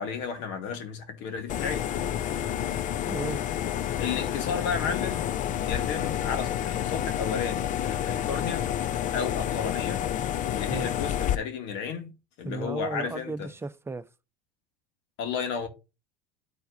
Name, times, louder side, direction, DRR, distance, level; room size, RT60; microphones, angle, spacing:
voice 1, 0.0-1.9 4.0-5.3 5.6-8.7 9.1-10.1 10.5-12.1 12.4-13.5 15.2-15.7, left 6 dB, 60° left, 2.3 m, -33 dB
sound 1, 1.5-11.4, left 10 dB, 40° left, 0.5 m, -29 dB
voice 2, 3.1-3.4 10.7-10.9 12.4-14.1, right 3 dB, 10° right, 0.8 m, -35 dB
12.5 x 4.5 x 2.6 m
hypercardioid pair, 85°, 21 cm